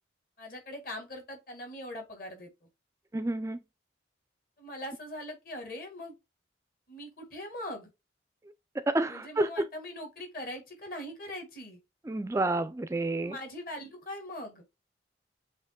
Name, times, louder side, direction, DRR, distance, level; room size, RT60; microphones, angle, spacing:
voice 1, 0.4-2.7 4.6-6.2 6.9-7.9 9.1-11.8 13.2-14.6, left 1 dB, 50° left, 1.9 m, -41 dB
voice 2, 3.1-3.6 8.8-9.7 12.1-13.4, right 2 dB, 15° right, 0.3 m, -29 dB
7.3 x 2.9 x 2.2 m
head